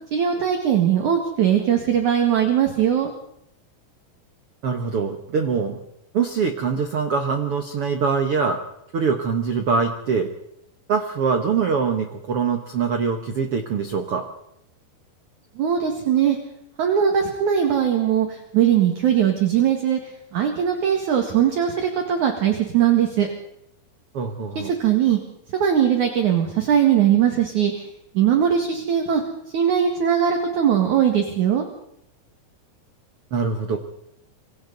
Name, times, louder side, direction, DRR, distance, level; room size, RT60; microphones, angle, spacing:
voice 1, 0.1-3.1 15.6-16.4 16.8-20.0 20.3-23.3 24.6-25.2 25.5-27.9 28.1-29.2 29.5-31.6, right 9 dB, 55° right, 3 dB, 2.9 m, -20 dB
voice 2, 4.6-5.8 6.1-8.6 8.9-10.3 10.9-14.3 24.1-24.7 33.3-33.8, right 5 dB, 75° right, 5 dB, 1.3 m, -23 dB
27.5 x 25.0 x 4.1 m, 0.76 s
omnidirectional pair, 4.9 m